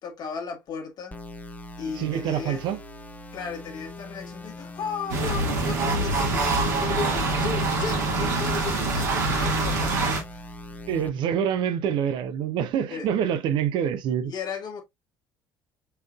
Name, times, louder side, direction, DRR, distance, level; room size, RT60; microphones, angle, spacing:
voice 1, 0.0-1.2 1.8-2.6 3.3-10.4 12.9-13.1 14.3-14.8, left 6 dB, 45° left, 1.6 m, -35 dB
sound 1, 1.1-11.1, left 2 dB, 15° left, 0.7 m, -42 dB
voice 2, 2.0-2.8 10.9-14.3, right 8 dB, 50° right, 0.7 m, -26 dB
sound 2, 5.1-10.2, right 3 dB, 70° right, 1.6 m, -25 dB
5.6 x 3.8 x 2.4 m
figure-of-eight pair, 55°, 10 cm